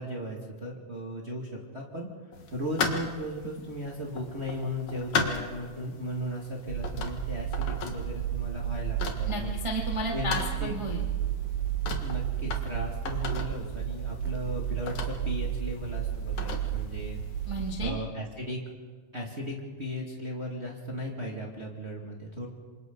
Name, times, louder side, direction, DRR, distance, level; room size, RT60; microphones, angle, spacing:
voice 1, 0.0-2.1 2.5-9.6 10.1-10.3 10.6-10.8 12.0-17.2 17.8-18.6 19.1-22.5, equal, 45° right, -2 dB, 0.8 m, -36 dB
sound 1, 2.3-17.7, left 4 dB, 60° left, 1.9 m, -38 dB
sound 2, 6.7-17.9, right 10 dB, 75° right, 3.4 m, -32 dB
voice 2, 9.3-11.1 17.5-18.0, equal, 15° right, -2 dB, 1.1 m, -33 dB
27.5 x 26.5 x 4.0 m, 1.5 s
omnidirectional pair, 5.6 m